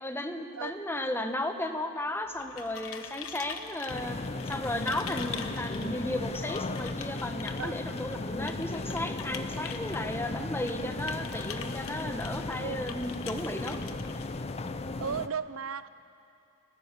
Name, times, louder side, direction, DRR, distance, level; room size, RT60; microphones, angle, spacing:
voice 1, 0.0-4.2 4.5-13.9, left 1 dB, 10° left, 6 dB, 1.1 m, -34 dB
sound 1, 2.2-14.9, left 7 dB, 80° left, 1.2 m, -45 dB
sound 2, 3.9-15.3, left 2 dB, 30° left, 0.6 m, -36 dB
voice 2, 15.0-15.9, right 6 dB, 75° right, 15 dB, 0.5 m, -35 dB
29.5 x 12.5 x 8.3 m, 2.6 s
head